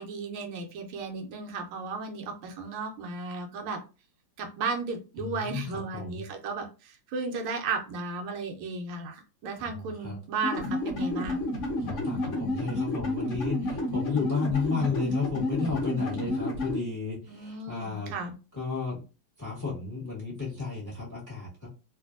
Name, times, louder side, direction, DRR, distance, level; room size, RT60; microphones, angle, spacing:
voice 1, 0.0-3.8 4.4-11.5 17.3-18.3, right 4 dB, 80° right, 4 dB, 1.4 m, -35 dB
voice 2, 5.2-6.2 9.6-10.2 11.8-18.1 18.5-19.0 19.4-21.7, left 4 dB, 10° left, -5 dB, 0.9 m, -33 dB
sound 1, 10.4-16.8, left 1 dB, 60° left, 0.8 m, -30 dB
3.2 x 2.6 x 2.4 m, 0.32 s
omnidirectional pair, 2.3 m